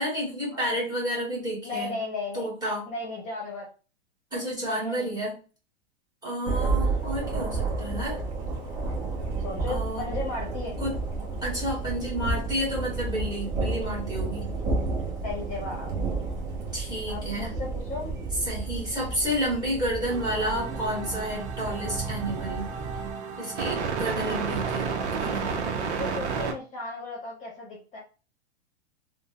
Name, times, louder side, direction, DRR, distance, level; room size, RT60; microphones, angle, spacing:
voice 1, 0.0-2.0 2.3-2.9 4.3-5.3 6.2-8.2 9.7-10.1 10.8-11.0 11.4-14.5 16.7-17.5 18.5-22.7 23.4-25.6, equal, 10° right, -6 dB, 1.2 m, -31 dB
voice 2, 1.6-2.5 2.8-3.7 4.6-5.2 6.5-6.7 9.4-10.8 15.2-15.9 17.1-18.1 26.0-28.0, left 2 dB, 20° left, -3 dB, 0.8 m, -35 dB
Thunder, 6.4-23.1, right 3 dB, 35° right, 0.9 m, -31 dB
sound 1, 20.1-26.5, right 5 dB, 90° right, 0.6 m, -31 dB
3.2 x 2.1 x 2.3 m, 0.35 s
hypercardioid pair, 140°, 33 cm